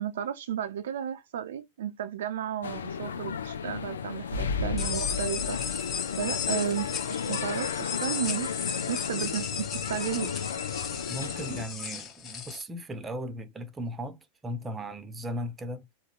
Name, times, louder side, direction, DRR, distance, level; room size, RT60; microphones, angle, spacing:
voice 1, 0.0-5.6 6.2-6.9 7.3-10.5, right 10 dB, 60° right, 0.4 m, -33 dB
sound 1, 2.6-11.6, left 6 dB, 65° left, 0.4 m, -33 dB
sound 2, 4.8-12.6, left 7 dB, 30° left, 0.9 m, -35 dB
voice 2, 11.1-15.9, equal, 15° right, 0.7 m, -37 dB
3.9 x 2.1 x 2.4 m
figure-of-eight pair, 90°, 0 cm